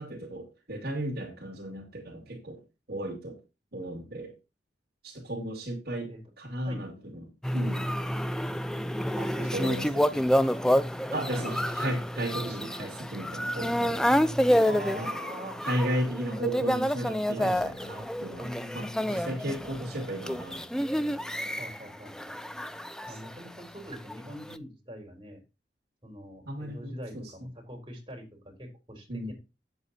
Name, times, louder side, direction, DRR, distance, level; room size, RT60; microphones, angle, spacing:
voice 1, 0.0-2.6 2.9-3.4 3.7-4.3 5.0-6.1 6.4-7.9 9.5-10.2 11.1-14.2 14.9-15.1 15.6-18.5 18.7-20.8 23.1-23.2 26.5-27.5 29.1-29.3, right 1 dB, 60° right, 2.4 m, -35 dB
sound 1, 7.4-23.6 24.1-24.6, equal, 5° left, 0.4 m, -29 dB
voice 2, 9.2-10.0 11.3-11.5 14.6-15.6 16.3-16.9 17.4-17.6 18.4-19.3 21.6-22.4 23.1-25.4 26.0-29.3, equal, 25° right, 4.0 m, -43 dB
8.4 x 7.9 x 4.2 m
head